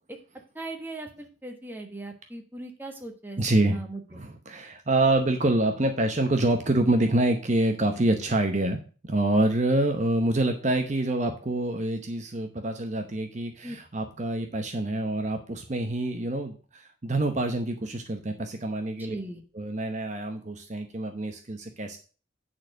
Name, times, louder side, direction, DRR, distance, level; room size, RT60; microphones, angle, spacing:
voice 1, 0.5-3.4 3.7-4.0 13.6-13.8 19.0-19.4, right 2 dB, 10° right, 3 dB, 1.2 m, -38 dB
voice 2, 3.4-3.8 4.1-8.8 9.1-19.2 19.5-22.0, right 2 dB, 35° right, 5 dB, 0.8 m, -26 dB
9.3 x 4.3 x 6.4 m, 0.37 s
head